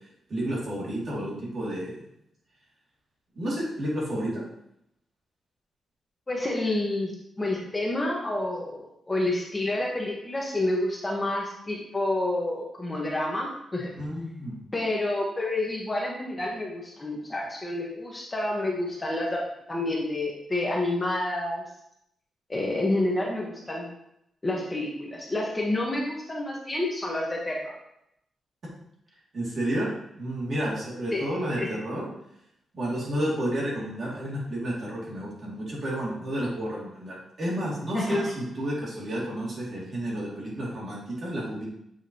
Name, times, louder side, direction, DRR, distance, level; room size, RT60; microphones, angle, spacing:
voice 1, 0.3-2.0 3.4-4.4 14.0-14.6 29.3-29.9 30.2-32.1 32.7-41.6, right 1 dB, 45° right, -5 dB, 2.3 m, -31 dB
voice 2, 6.3-7.1 7.4-13.9 14.7-21.6 22.5-23.9 24.4-27.7 31.1-31.3 31.6-31.7 37.9-38.2, left 1 dB, 15° left, -2 dB, 1.1 m, -29 dB
7.3 x 4.6 x 2.9 m, 0.79 s
wide cardioid pair, 135°, 0 cm